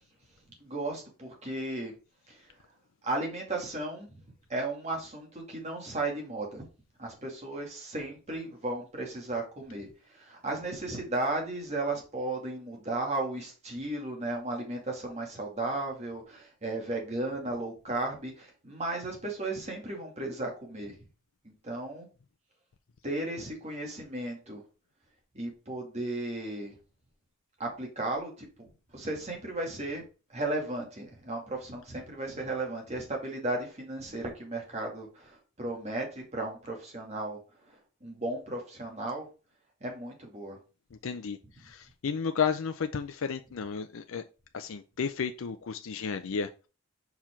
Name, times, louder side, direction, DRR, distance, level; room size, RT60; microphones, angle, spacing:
voice 1, 0.6-1.9 2.3-2.4 3.0-4.1 4.5-6.6 7.0-20.9 21.4-22.1 23.0-24.6 25.3-26.7 27.6-28.5 28.9-30.0 30.3-37.4 37.7-39.3 39.8-40.6, right 2 dB, 30° right, 2.4 m, -35 dB
voice 2, 41.0-41.4 41.6-44.2 44.5-46.5, left 6 dB, 70° left, 0.5 m, -32 dB
5.7 x 4.7 x 4.5 m
head